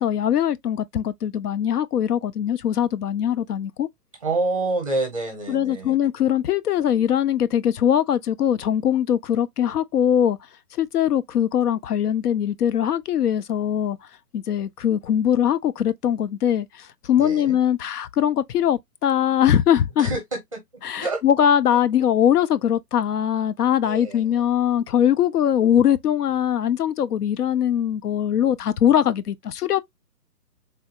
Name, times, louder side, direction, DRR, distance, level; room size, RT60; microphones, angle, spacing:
voice 1, 0.0-3.9 5.5-10.4 10.8-14.0 14.3-20.1 20.8-29.8, left 9 dB, 75° left, 0.5 m, -21 dB
voice 2, 4.2-6.0 17.2-17.6 20.0-20.6 21.0-21.2 23.8-24.4, right 2 dB, 20° right, 0.6 m, -27 dB
3.4 x 2.3 x 2.7 m
hypercardioid pair, 165°, 47 cm